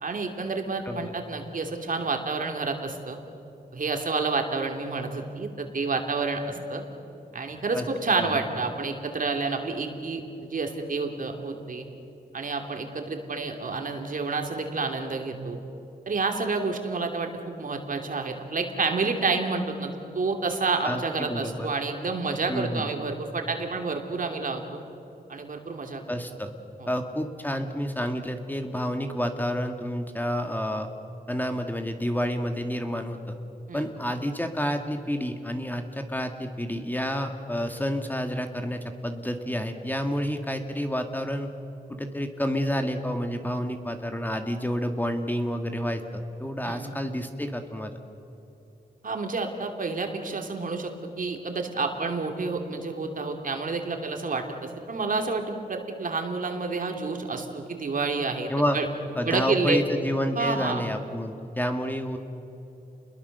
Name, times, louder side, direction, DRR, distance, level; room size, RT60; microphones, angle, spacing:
voice 1, 0.0-3.2 3.7-6.8 7.3-11.9 12.3-15.6 16.1-17.3 17.6-24.8 25.3-26.0 26.8-26.9 33.7-33.9 46.6-46.9 49.0-58.9 59.2-59.8 60.3-60.8, right 4 dB, 55° right, 4 dB, 2.9 m, -29 dB
voice 2, 20.8-21.7 22.5-22.9 26.1-26.5 26.9-30.9 31.3-33.4 33.7-41.5 41.9-48.0 58.5-58.8 59.2-62.2, equal, 10° left, 5 dB, 1.7 m, -29 dB
28.5 x 21.5 x 6.7 m, 2.9 s
wide cardioid pair, 90°, 17 cm